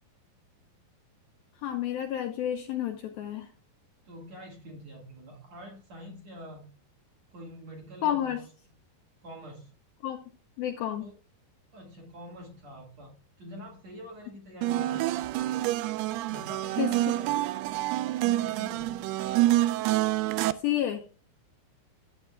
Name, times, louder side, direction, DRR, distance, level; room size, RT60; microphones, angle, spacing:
voice 1, 1.6-3.5 8.0-8.4 10.0-10.2 10.6-11.1 16.8-16.9 20.6-21.0, left 11 dB, 80° left, 4 dB, 2.2 m, -30 dB
voice 2, 4.0-6.7 7.3-8.4 9.2-9.7 11.0-11.1 11.7-15.0 16.3-17.4 18.1-19.1, equal, 50° right, -1 dB, 2.3 m, -45 dB
sound 1, 14.6-20.5, right 15 dB, 90° right, 2.3 m, -27 dB
13.5 x 8.2 x 2.3 m, 0.36 s
omnidirectional pair, 5.1 m